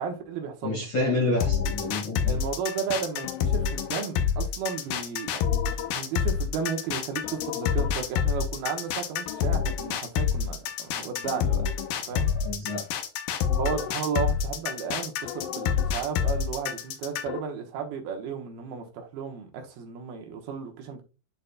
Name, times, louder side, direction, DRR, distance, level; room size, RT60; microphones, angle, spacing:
voice 1, 0.0-0.9 2.2-5.5 5.9-11.7 12.1-12.3 13.5-21.0, right 6 dB, 80° right, 3.0 m, -34 dB
voice 2, 0.6-2.4 12.1-12.8, left 2 dB, 40° left, 1.9 m, -29 dB
sound 1, 1.4-17.4, left 8 dB, 80° left, 2.4 m, -27 dB
10.5 x 4.1 x 2.2 m
omnidirectional pair, 4.3 m